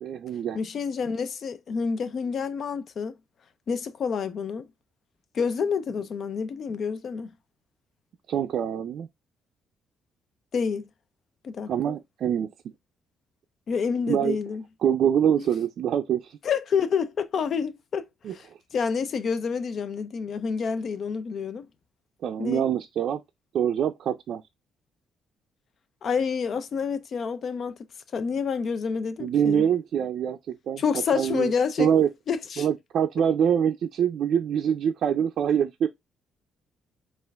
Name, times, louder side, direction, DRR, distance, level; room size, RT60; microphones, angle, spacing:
voice 1, 0.0-0.6 8.3-9.1 11.7-12.5 14.1-14.4 14.8-16.4 18.2-18.3 22.2-23.2 23.5-24.4 29.2-30.8 31.2-31.5 31.8-32.1 32.6-35.9, right 9 dB, 70° right, 0.4 m, -24 dB
voice 2, 0.5-3.1 3.7-4.7 5.3-7.3 10.5-10.8 11.4-12.0 13.7-14.6 16.4-18.5 18.7-21.7 22.4-22.6 26.0-27.8 28.1-29.7 30.8-31.9 32.3-32.7, left 6 dB, 55° left, 0.5 m, -28 dB
4.3 x 2.5 x 3.4 m
cardioid pair, 90°, 0 cm